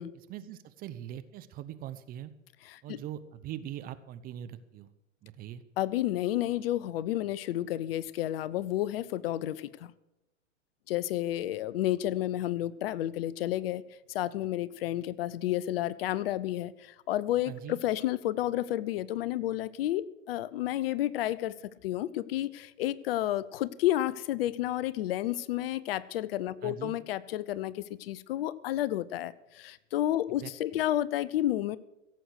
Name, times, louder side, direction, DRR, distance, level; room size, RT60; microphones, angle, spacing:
voice 1, 0.3-2.3 2.8-4.9 5.2-5.6 17.5-17.8 26.6-27.0 30.4-30.8, right 11 dB, 25° right, 12 dB, 0.7 m, -42 dB
voice 2, 2.6-3.0 5.8-9.9 10.9-13.8 14.1-21.5 21.8-31.8, left 13 dB, 50° left, 19 dB, 0.6 m, -31 dB
16.5 x 7.9 x 6.5 m, 0.94 s
hypercardioid pair, 115°, 38 cm